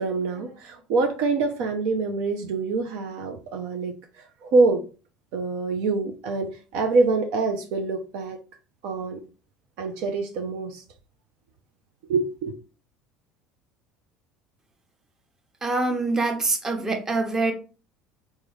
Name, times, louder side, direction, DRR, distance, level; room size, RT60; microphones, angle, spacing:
voice 1, 0.0-4.8 5.3-8.4 8.8-9.2 9.8-10.8 12.1-12.5, right 3 dB, 70° right, 0.5 m, -25 dB
voice 2, 15.6-17.5, right 3 dB, 25° right, 0.9 m, -24 dB
3.5 x 2.1 x 3.1 m
hypercardioid pair, 75°, 2 cm